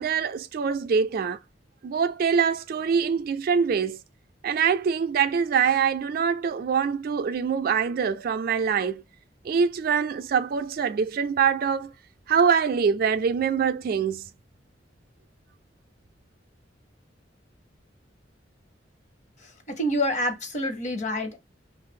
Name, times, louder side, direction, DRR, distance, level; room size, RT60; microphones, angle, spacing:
voice 1, 0.0-1.4 1.8-4.0 4.4-9.0 9.4-11.9 12.3-14.2, right 6 dB, 55° right, 0.3 m, -24 dB
voice 2, 19.7-21.4, equal, 40° left, 0.8 m, -27 dB
2.6 x 2.4 x 3.6 m
head